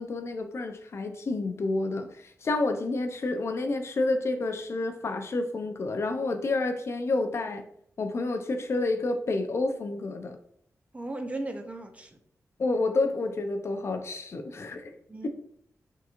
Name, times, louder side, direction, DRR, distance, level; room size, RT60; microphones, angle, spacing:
voice 1, 0.0-7.7 8.0-10.4 12.6-15.0, left 2 dB, 50° left, 7 dB, 0.4 m, -29 dB
voice 2, 10.9-12.2 15.1-15.3, right 2 dB, 25° right, 5 dB, 0.5 m, -36 dB
3.6 x 2.9 x 2.4 m, 0.66 s
wide cardioid pair, 100°, 6 cm